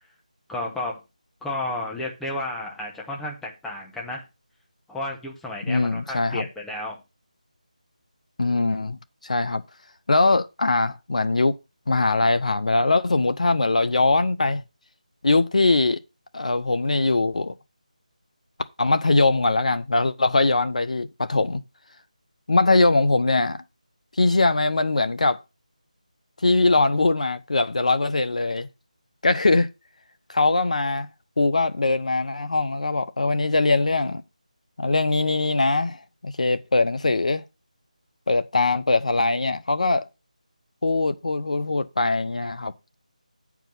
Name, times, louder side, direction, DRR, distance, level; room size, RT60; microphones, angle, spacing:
voice 1, 0.5-1.0 1.4-4.2 4.9-7.0, left 2 dB, 5° left, 1.0 m, -32 dB
voice 2, 5.7-6.4 8.4-9.6 10.1-11.6 11.9-14.6 15.2-16.0 16.3-17.5 18.8-21.6 22.5-23.6 24.2-25.4 26.4-28.7 29.2-29.7 30.3-31.1 31.4-34.2 34.8-37.4 38.3-40.1 40.8-42.7, left 3 dB, 60° left, 0.7 m, -21 dB
9.0 x 4.8 x 5.5 m
figure-of-eight pair, 165°, 4 cm